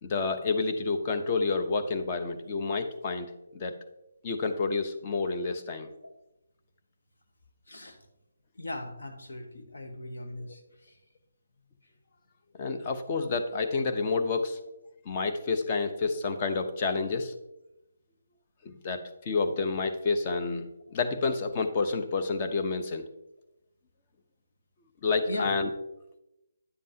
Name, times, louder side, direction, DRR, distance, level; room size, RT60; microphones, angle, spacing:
voice 1, 0.0-3.3 3.5-3.7 4.2-5.9 12.6-14.6 15.1-17.3 18.6-23.0 25.0-25.7, left 4 dB, 30° left, 6 dB, 0.8 m, -29 dB
voice 2, 7.7-8.0 8.5-11.0 25.3-25.6, left 1 dB, 70° left, 5 dB, 1.2 m, -38 dB
9.7 x 7.3 x 2.8 m, 0.92 s
figure-of-eight pair, 150°, 0 cm